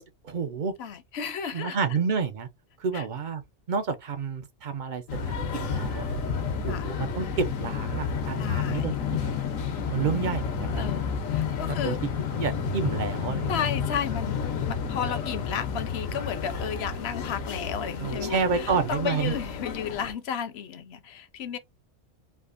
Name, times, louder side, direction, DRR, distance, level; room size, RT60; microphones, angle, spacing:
voice 1, 0.0-0.7 1.5-2.5 2.8-3.4 3.7-6.2 6.6-9.3 9.9-10.9 11.6-12.0 12.4-13.5 18.0-19.3, right 5 dB, 55° right, 0.5 m, -30 dB
voice 2, 0.8-1.8 2.9-3.0 6.7-6.9 8.4-8.9 10.7-12.0 13.5-21.6, left 8 dB, 60° left, 0.8 m, -33 dB
sound 1, 5.1-20.1, left 6 dB, 80° left, 1.1 m, -31 dB
3.5 x 2.4 x 2.4 m
omnidirectional pair, 1.3 m